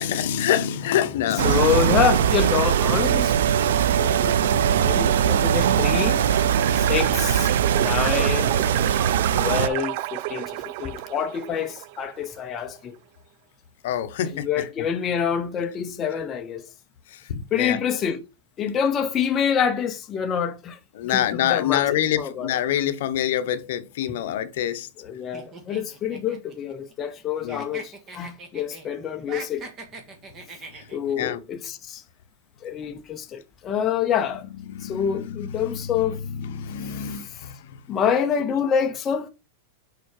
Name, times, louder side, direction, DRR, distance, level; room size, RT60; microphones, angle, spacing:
voice 1, 0.0-1.9 13.8-14.9 17.1-17.8 20.9-24.9 27.4-27.6 30.7-30.8 31.2-31.4 34.7-37.8, left 10 dB, 65° left, 0.9 m, -26 dB
voice 2, 1.4-3.4 4.0-6.4 6.8-8.5 9.4-13.0 14.3-16.7 17.5-18.2 18.6-20.8 21.0-22.5 25.0-29.6 30.9-32.0 32.6-34.4 34.8-36.2 36.9-37.2 37.9-39.3, left 8 dB, 20° left, 0.7 m, -27 dB
sound 1, 1.4-9.7, right 9 dB, 85° right, 0.6 m, -21 dB
sound 2, 6.5-12.2, right 18 dB, 50° right, 0.3 m, -31 dB
sound 3, 25.3-27.2 27.5-28.9 29.2-31.1, right 3 dB, 25° right, 1.7 m, -41 dB
6.8 x 4.6 x 4.8 m
supercardioid pair, 160°, 0 cm